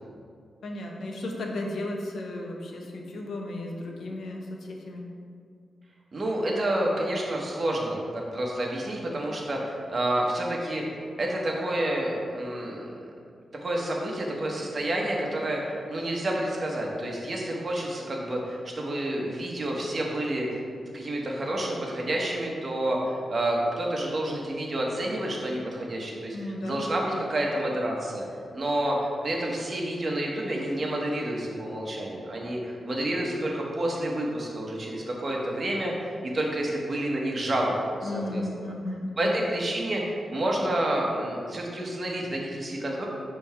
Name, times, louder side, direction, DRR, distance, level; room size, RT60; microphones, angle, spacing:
voice 1, 0.6-5.1 26.3-26.9 38.0-39.3, left 1 dB, 75° left, 0 dB, 0.9 m, -34 dB
voice 2, 6.1-13.0 13.6-20.6 20.9-26.4 26.6-28.3 28.5-38.7 39.2-43.0, right 1 dB, 40° right, -2 dB, 1.1 m, -29 dB
5.4 x 3.4 x 5.7 m, 2.2 s
wide cardioid pair, 110°, 0 cm